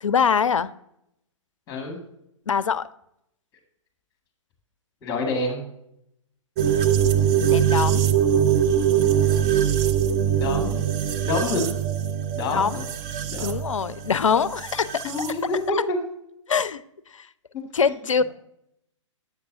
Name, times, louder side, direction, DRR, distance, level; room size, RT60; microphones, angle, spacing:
voice 1, 0.0-0.7 2.5-2.9 7.5-8.1 12.5-12.8 13.4-15.0 15.7-15.8 16.5-16.8 17.1-17.3 17.7-18.2, left 6 dB, 80° left, 0.4 m, -23 dB
voice 2, 1.7-2.0 5.0-5.6 10.3-10.8 11.2-11.7 12.3-12.9 13.2-13.6 15.0-16.0 17.9-18.0, left 3 dB, 20° left, 1.7 m, -27 dB
sound 1, 6.6-15.3, right 9 dB, 20° right, 0.4 m, -22 dB
8.2 x 6.6 x 2.7 m
figure-of-eight pair, 120°, 16 cm